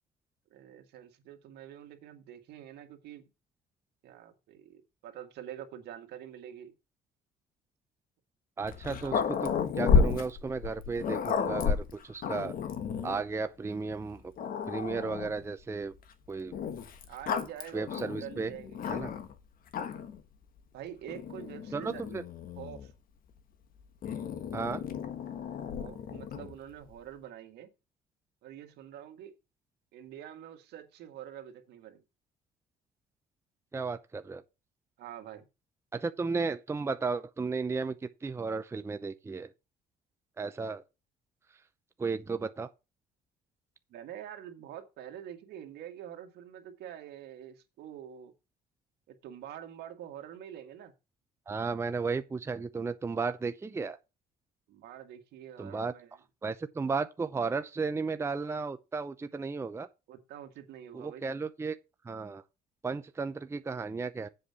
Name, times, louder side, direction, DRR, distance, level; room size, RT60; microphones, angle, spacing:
voice 1, 0.5-3.3 4.0-6.7 9.0-9.2 17.1-19.1 20.7-22.2 22.6-22.9 25.8-27.7 28.4-29.3 29.9-32.0 35.0-35.5 43.9-48.3 49.1-50.9 54.7-56.2 60.1-61.4, right 10 dB, 75° right, 1.9 m, -46 dB
Growling, 8.6-13.2 13.9-14.0 14.4-15.4 16.5-19.3 19.7-20.2 21.1-22.9 24.0-26.6, left 6 dB, 55° left, 1.4 m, -32 dB
voice 2, 8.6-9.5 9.8-12.6 13.0-14.2 14.7-15.9 16.3-16.5 17.7-18.5 18.9-19.1 21.7-22.2 24.5-24.8 33.7-34.4 35.9-38.0 38.2-39.5 40.4-40.8 42.0-42.7 51.5-54.0 55.6-55.9 56.4-59.9 60.9-61.8 62.1-62.4 62.8-64.3, right 4 dB, 15° right, 0.6 m, -34 dB
7.8 x 4.9 x 6.8 m
cardioid pair, 110°, 17 cm